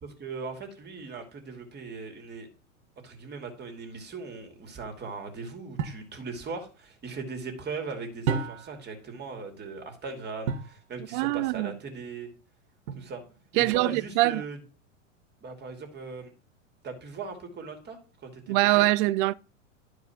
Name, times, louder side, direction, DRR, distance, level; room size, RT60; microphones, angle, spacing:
voice 1, 0.0-2.5 3.0-12.3 13.0-13.2 13.5-14.6 15.4-16.3 16.8-18.9, right 4 dB, 25° right, 2.5 m, -39 dB
sound 1, 5.8-6.1 8.3-8.9 10.5-10.8 12.9-13.4, right 6 dB, 65° right, 1.5 m, -31 dB
voice 2, 11.1-11.7 13.6-14.4 18.5-19.3, right 19 dB, 45° right, 0.4 m, -23 dB
11.0 x 4.8 x 5.8 m
hypercardioid pair, 100°, 39 cm